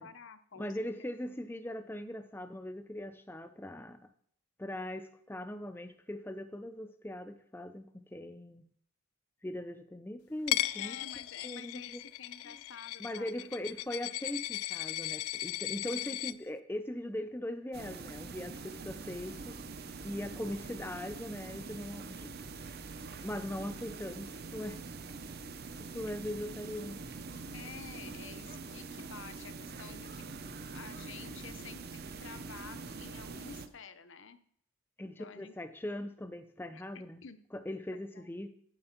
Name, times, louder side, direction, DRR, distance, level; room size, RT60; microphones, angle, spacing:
voice 1, 0.0-0.9 1.2-1.5 10.6-13.5 16.0-16.4 27.5-30.3 30.7-34.4 35.0-35.5 36.7-36.8 37.2-37.4 38.1-38.3, left 6 dB, 60° left, 11 dB, 0.8 m, -50 dB
voice 2, 0.6-4.0 4.6-8.7 9.4-11.0 11.4-12.0 12.5-12.6 13.0-19.6 20.0-22.4 23.2-24.8 25.8-27.0 28.1-28.2 35.0-37.2 37.5-38.5, left 1 dB, 10° left, 8 dB, 0.5 m, -40 dB
Coin (dropping), 10.5-16.3, left 16 dB, 85° left, 0.3 m, -37 dB
sound 1, 17.7-33.7, right 4 dB, 45° right, 0.7 m, -44 dB
8.8 x 7.6 x 5.9 m, 0.65 s
head